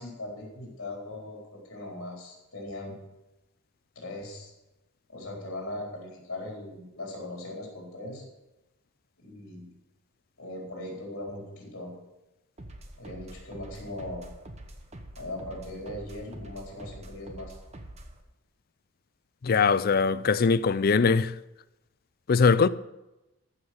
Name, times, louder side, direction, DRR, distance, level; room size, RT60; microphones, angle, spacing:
voice 1, 0.0-3.0 3.9-4.5 5.1-8.2 9.2-9.7 10.4-11.9 13.0-14.2 15.2-17.5, left 1 dB, 60° left, 4.2 m, -39 dB
sound 1, 12.6-18.2, right 1 dB, 30° right, 1.2 m, -45 dB
voice 2, 19.4-21.3 22.3-22.7, left 5 dB, 45° left, 0.4 m, -21 dB
14.5 x 5.7 x 7.9 m
head